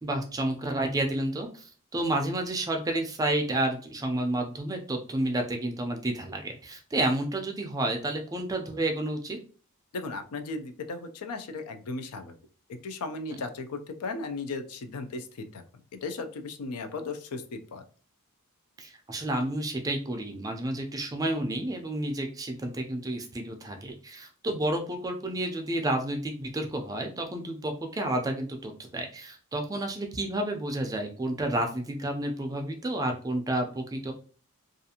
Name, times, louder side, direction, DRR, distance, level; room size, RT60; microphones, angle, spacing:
voice 1, 0.0-9.4 18.8-34.1, right 1 dB, 15° right, 4 dB, 0.3 m, -30 dB
voice 2, 9.9-12.4 12.8-15.6 15.9-17.8, left 3 dB, 85° left, 7 dB, 0.4 m, -36 dB
2.5 x 2.4 x 2.7 m, 0.39 s
head